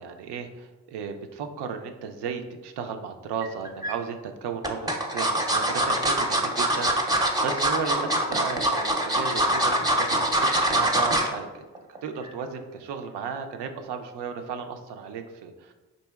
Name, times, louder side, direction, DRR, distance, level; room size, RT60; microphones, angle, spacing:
voice 1, 0.0-11.6 12.0-15.7, right 6 dB, 65° right, 6 dB, 0.5 m, -34 dB
sound 1, 3.4-3.9 4.6-11.3 11.7-12.0 12.3-12.4, right 1 dB, 10° right, 0.5 m, -24 dB
4.1 x 2.7 x 2.3 m, 1.2 s
hypercardioid pair, 40°, 44 cm